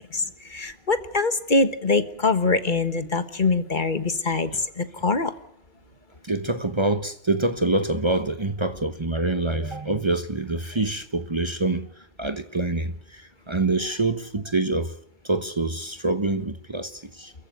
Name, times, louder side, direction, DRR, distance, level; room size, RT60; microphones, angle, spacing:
voice 1, 0.1-5.3, left 3 dB, 50° left, 1.6 m, -24 dB
voice 2, 6.2-11.9 12.2-14.9 15.2-17.3, right 2 dB, 25° right, 1.1 m, -26 dB
28.5 x 14.5 x 9.2 m
omnidirectional pair, 1.1 m